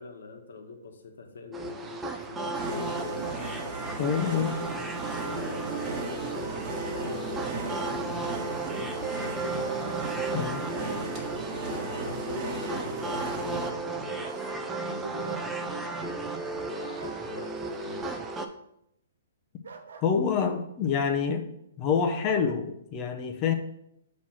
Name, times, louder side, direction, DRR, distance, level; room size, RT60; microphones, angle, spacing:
voice 1, 0.0-3.6 4.9-10.0 10.8-18.2, left 3 dB, 80° left, 4 dB, 1.1 m, -44 dB
sound 1, 1.5-18.5, right 3 dB, 10° right, 0.5 m, -34 dB
Bark, 2.4-3.5 6.3-6.9 7.3-7.4 9.6-10.7 14.2-14.9 15.2-15.5 17.0-17.2 19.6-20.6, right 4 dB, 75° right, 0.8 m, -47 dB
sound 2, 2.5-13.7, right 2 dB, 30° right, 1.4 m, -36 dB
voice 2, 4.0-4.6 10.3-10.7 20.0-21.5 21.8-23.5, left 6 dB, 30° left, 5 dB, 0.7 m, -27 dB
6.0 x 3.2 x 5.7 m, 0.76 s
hypercardioid pair, 135°, 0 cm